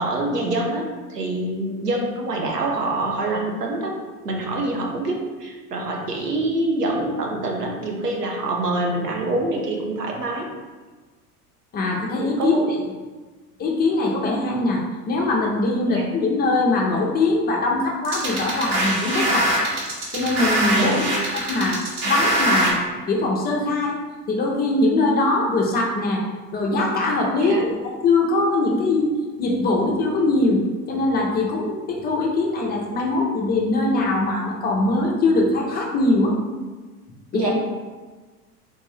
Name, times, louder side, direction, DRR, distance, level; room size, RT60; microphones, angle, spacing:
voice 1, 0.0-4.0 4.2-10.5 12.4-12.7 15.9-16.1 20.7-21.1 27.3-27.6 37.3-37.5, right 2 dB, 85° right, 0 dB, 0.7 m, -25 dB
voice 2, 11.7-12.6 13.6-19.6 20.1-21.0 21.4-22.8 23.1-24.0 24.3-26.2 26.5-27.8 28.0-36.3 37.3-37.5, left 2 dB, 20° left, -1 dB, 0.4 m, -22 dB
sound 1, 18.0-22.7, right 1 dB, 50° right, 1.2 m, -23 dB
3.7 x 2.6 x 3.2 m, 1.3 s
figure-of-eight pair, 75°, 46 cm